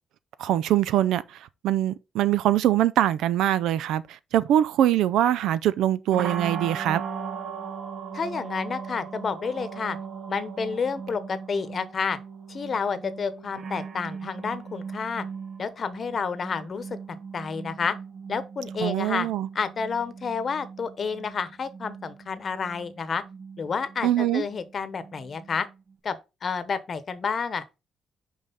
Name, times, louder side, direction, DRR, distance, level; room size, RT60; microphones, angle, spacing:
voice 1, 0.4-1.2 1.6-7.0 18.8-19.5 24.0-24.4, right 12 dB, 85° right, 0.4 m, -23 dB
sound 1, 6.1-25.9, right 6 dB, 60° right, 1.1 m, -39 dB
voice 2, 8.1-10.0 10.3-12.2 12.5-15.2 15.6-17.0 17.3-17.9 18.3-19.3 19.5-23.2 23.6-25.7 26.0-27.6, left 5 dB, 45° left, 0.9 m, -30 dB
5.6 x 4.9 x 3.9 m
cardioid pair, 90°, 0 cm